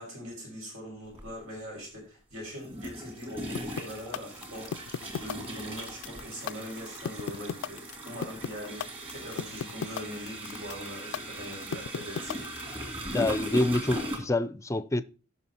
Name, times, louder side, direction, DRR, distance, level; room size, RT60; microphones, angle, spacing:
voice 1, 0.0-4.8 5.2-12.3, equal, 90° right, 5.5 m, -41 dB
sound 1, 1.2-1.3 2.6-14.2, right 1 dB, 25° right, 2.2 m, -39 dB
sound 2, 3.5-12.8, left 7 dB, 80° left, 0.3 m, -34 dB
voice 2, 13.1-15.0, left 2 dB, 15° left, 0.4 m, -27 dB
17.0 x 5.8 x 2.8 m
head